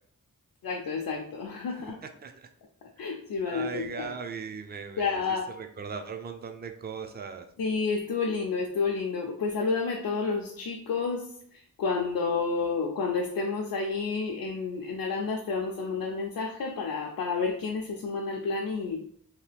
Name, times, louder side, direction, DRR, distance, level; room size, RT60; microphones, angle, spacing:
voice 1, 0.6-2.0 3.0-4.1 5.0-5.5 7.6-11.3 11.5-19.0, left 4 dB, 80° left, 0 dB, 0.5 m, -30 dB
voice 2, 1.8-2.5 3.0-3.1 3.4-7.5, right 6 dB, 30° right, 7 dB, 0.4 m, -39 dB
2.8 x 2.3 x 3.3 m, 0.63 s
cardioid pair, 65°, 34 cm